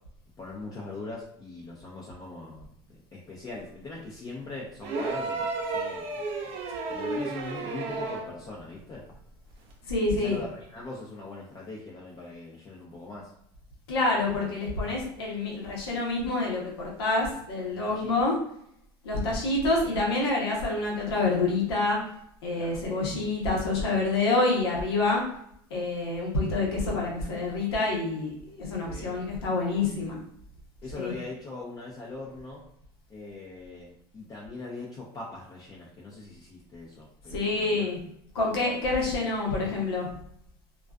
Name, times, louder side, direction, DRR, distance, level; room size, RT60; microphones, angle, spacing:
voice 1, 0.4-2.7 3.1-6.1 6.9-9.0 10.2-13.3 17.7-18.3 22.6-22.8 28.9-29.2 30.8-32.6 33.1-37.9, left 3 dB, 30° left, -5 dB, 0.6 m, -41 dB
sound 1, 4.8-8.4 9.7-9.8, right 3 dB, 55° right, 0.6 m, -32 dB
voice 2, 9.8-10.4 13.9-18.3 19.0-22.0 22.4-25.2 25.7-30.2 30.9-31.1 37.3-38.0 38.3-40.1, left 3 dB, 90° left, -3 dB, 0.8 m, -27 dB
2.4 x 2.4 x 2.2 m, 0.71 s
supercardioid pair, 90°, 13 cm